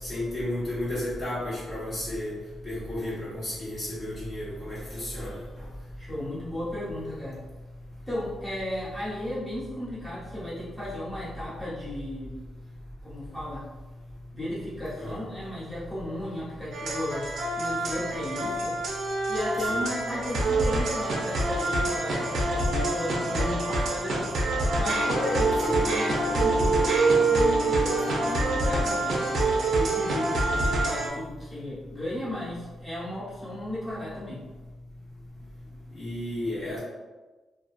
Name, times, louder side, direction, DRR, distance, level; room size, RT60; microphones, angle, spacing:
voice 1, 0.0-2.3 2.6-5.4 15.0-15.2 19.6-19.8 25.6-25.8 35.9-36.8, left 1 dB, 35° left, -9 dB, 1.0 m, -33 dB
voice 2, 6.0-7.4 8.1-12.4 13.0-13.7 14.3-17.3 17.5-18.7 19.3-24.3 24.8-27.0 27.3-34.4, left 1 dB, 10° left, -10 dB, 1.0 m, -35 dB
sound 1, 16.7-31.1, right 2 dB, 70° right, 0.5 m, -26 dB
Wind instrument woodwind instrument, 24.8-29.1, left 4 dB, 60° left, 0.9 m, -36 dB
2.5 x 2.2 x 2.3 m, 1.2 s
cardioid pair, 135°, 0 cm